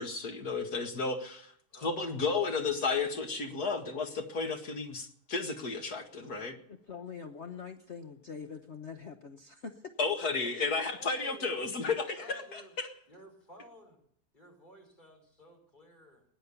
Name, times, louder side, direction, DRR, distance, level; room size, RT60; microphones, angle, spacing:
voice 1, 0.0-1.5 1.8-6.5 10.0-12.9, left 4 dB, 65° left, 5 dB, 2.3 m, -33 dB
voice 2, 1.7-2.4 10.9-11.6 12.1-12.7 13.1-14.0 14.3-16.2, left 1 dB, 25° left, 1 dB, 5.1 m, -53 dB
voice 3, 6.7-9.8, left 6 dB, 45° left, 6 dB, 1.1 m, -44 dB
19.5 x 10.5 x 7.0 m, 0.63 s
omnidirectional pair, 1.8 m